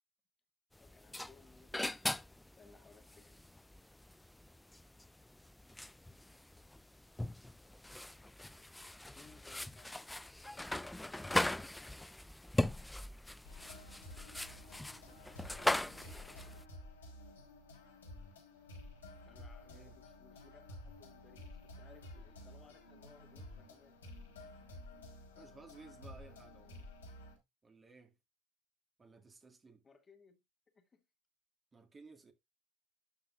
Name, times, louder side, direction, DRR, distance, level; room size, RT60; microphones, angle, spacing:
voice 1, 0.8-2.0 2.5-3.4 9.0-10.5 19.2-24.0 29.8-30.4 30.7-31.0, left 4 dB, 30° left, 1.8 m, -63 dB
sound 1, 0.8-16.6, left 1 dB, 10° left, 0.3 m, -40 dB
sound 2, 13.4-27.4, left 1 dB, 90° left, 3.0 m, -52 dB
voice 2, 19.6-20.0 25.4-26.9 27.6-28.2 29.0-29.8 31.7-32.3, right 3 dB, 25° right, 1.9 m, -57 dB
11.5 x 5.6 x 2.4 m
hypercardioid pair, 70°, 0 cm